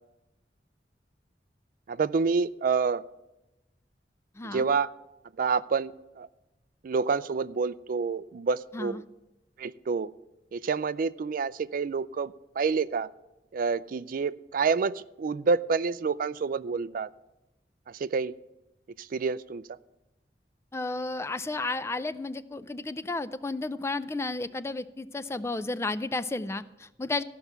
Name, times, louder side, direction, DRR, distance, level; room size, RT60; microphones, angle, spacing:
voice 1, 1.9-3.0 4.4-4.9 5.4-6.3 6.8-9.0 9.6-10.1 10.5-13.1 13.5-17.1 17.9-18.4 19.0-19.8, right 5 dB, 50° right, 17 dB, 0.4 m, -28 dB
voice 2, 4.4-4.7 8.7-9.0 20.7-27.2, left 2 dB, 15° left, 13 dB, 0.4 m, -32 dB
14.0 x 5.8 x 8.0 m, 0.97 s
head